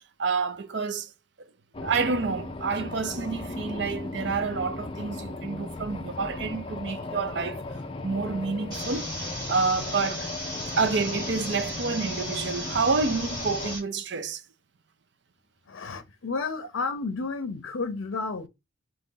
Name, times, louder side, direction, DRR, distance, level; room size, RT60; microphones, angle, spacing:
voice 1, 0.2-1.1 1.4-1.5 1.8-7.6 8.0-9.1 9.5-10.3 10.8-14.4, right 4 dB, 55° right, 0.5 m, -28 dB
sound 1, 1.7-13.8, left 2 dB, 25° left, 0.4 m, -37 dB
sound 2, 8.7-13.8, equal, 20° right, 2.2 m, -36 dB
voice 2, 15.7-18.5, left 4 dB, 75° left, 0.5 m, -31 dB
3.9 x 2.9 x 3.7 m
head